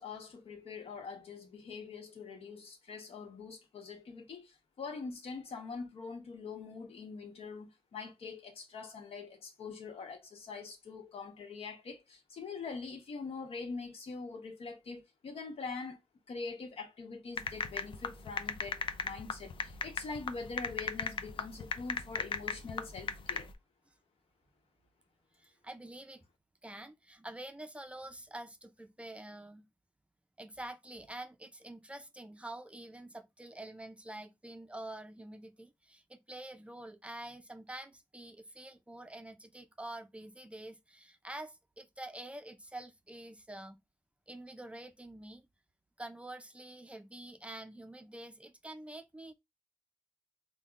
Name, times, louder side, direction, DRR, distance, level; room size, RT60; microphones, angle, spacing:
voice 1, 0.0-16.0 16.3-23.5, left 4 dB, 85° left, 0.9 m, -44 dB
sound 1, 17.4-23.5, left 5 dB, 60° left, 0.5 m, -37 dB
voice 2, 25.3-26.2 26.6-29.6 30.4-43.8 44.3-45.4 46.0-49.3, right 1 dB, 10° right, 0.4 m, -47 dB
5.3 x 2.1 x 2.4 m
wide cardioid pair, 135°, 10 cm